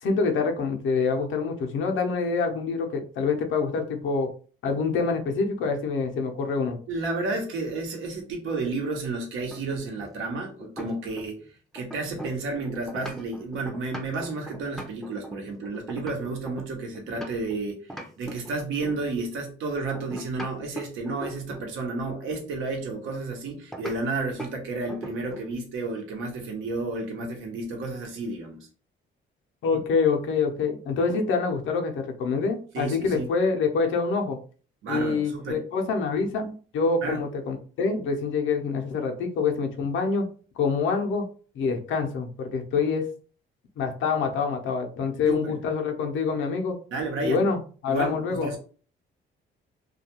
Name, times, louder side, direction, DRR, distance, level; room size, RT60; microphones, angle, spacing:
voice 1, 0.0-4.3 4.6-6.8 29.6-34.4 34.9-40.2 40.6-41.2 41.5-43.0 43.8-46.8 47.2-48.5, left 4 dB, 75° left, 4 dB, 0.6 m, -26 dB
voice 2, 6.9-11.4 11.7-17.9 18.2-28.7 32.7-33.3 34.8-35.6 37.0-37.2 45.2-45.5 46.9-47.4 47.9-48.6, right 3 dB, 85° right, 2 dB, 0.8 m, -31 dB
sound 1, 9.5-11.5 11.8-17.6 17.9-19.1 19.9-21.7 23.7-24.0 24.4-24.6 24.9-25.5, equal, ahead, 0.5 m, -40 dB
2.3 x 2.2 x 2.9 m, 0.40 s
cardioid pair, 90°, 20 cm